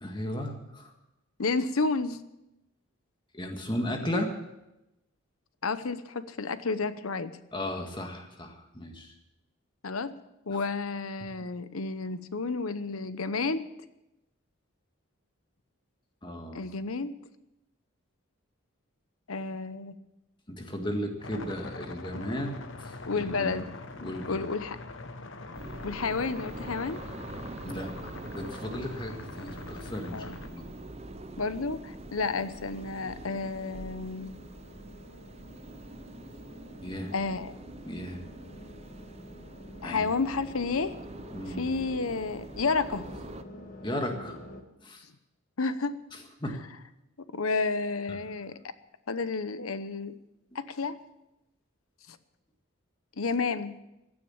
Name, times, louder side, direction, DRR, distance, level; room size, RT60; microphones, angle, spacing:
voice 1, 0.0-0.9 3.3-4.3 7.5-9.1 10.5-10.6 16.2-16.6 20.5-23.5 24.0-24.4 27.6-30.6 36.8-37.1 37.8-38.2 39.8-40.1 41.3-41.7 43.8-44.4 44.8-45.0 46.4-46.6, left 1 dB, 20° left, 3 dB, 1.8 m, -35 dB
voice 2, 1.4-2.2 5.6-7.3 9.8-10.1 10.5-13.7 16.5-17.1 19.3-19.9 22.1-22.2 23.1-23.7 24.0-24.8 25.8-27.0 30.1-30.4 31.4-34.4 37.1-37.5 39.8-41.0 41.5-43.1 45.6-46.0 47.3-48.6 49.1-50.2 50.5-51.0 52.1-52.2 53.2-53.7, left 4 dB, 85° left, 13 dB, 0.9 m, -31 dB
sound 1, 21.2-30.5, left 3 dB, 65° left, 1.1 m, -43 dB
sound 2, 25.3-44.6, left 1 dB, 40° left, 1.5 m, -50 dB
sound 3, 25.5-43.4, right 2 dB, 30° right, 0.6 m, -45 dB
16.0 x 9.7 x 7.2 m, 0.91 s
head